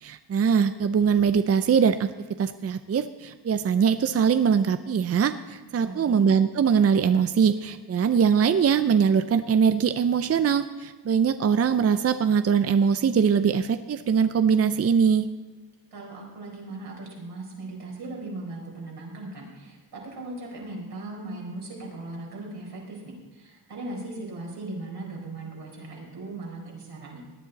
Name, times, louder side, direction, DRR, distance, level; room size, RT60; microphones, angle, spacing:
voice 1, 0.0-2.1 2.4-15.3, right 7 dB, 40° right, 11 dB, 0.5 m, -22 dB
voice 2, 5.8-6.2 15.9-27.2, right 2 dB, 80° right, -2 dB, 4.7 m, -38 dB
18.0 x 10.0 x 4.1 m, 1.3 s
cardioid pair, 75°, 40 cm